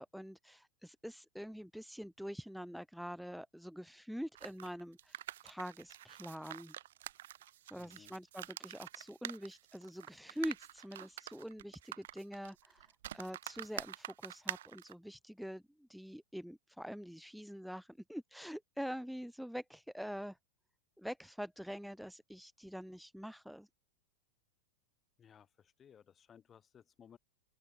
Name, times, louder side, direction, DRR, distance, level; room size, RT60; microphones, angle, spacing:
voice 1, 0.0-6.7 7.6-20.4 21.0-23.7, equal, ahead, 2.4 m, -45 dB
sound 1, 4.4-14.9, right 13 dB, 60° right, 5.1 m, -47 dB
voice 2, 7.8-8.2 25.2-27.2, left 8 dB, 25° left, 7.8 m, -61 dB
open air
figure-of-eight pair, 90°, 0 cm